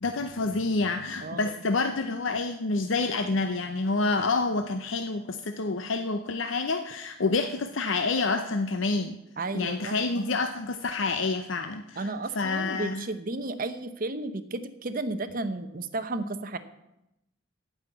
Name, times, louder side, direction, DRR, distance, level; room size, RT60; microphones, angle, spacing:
voice 1, 0.0-9.2 9.5-13.1, left 3 dB, 75° left, 7 dB, 0.7 m, -28 dB
voice 2, 1.2-1.5 9.4-10.0 12.0-16.6, right 2 dB, 45° right, 11 dB, 0.8 m, -33 dB
14.5 x 5.7 x 8.4 m, 0.87 s
head